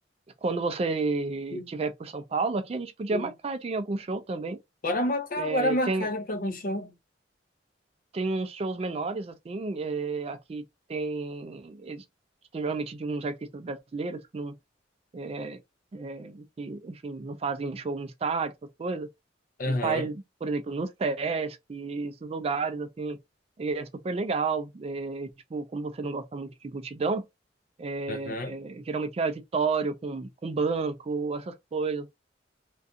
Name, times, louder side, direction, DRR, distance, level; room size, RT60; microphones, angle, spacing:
voice 1, 0.4-4.6 5.4-6.1 8.1-10.6 10.9-12.0 12.5-14.5 15.1-15.6 15.9-18.5 18.8-19.1 19.7-23.2 23.6-27.2 27.8-32.1, right 4 dB, 35° right, 0.3 m, -31 dB
voice 2, 4.8-6.9 19.6-20.1 28.1-28.5, left 1 dB, 50° left, 0.5 m, -29 dB
2.4 x 2.3 x 2.5 m
head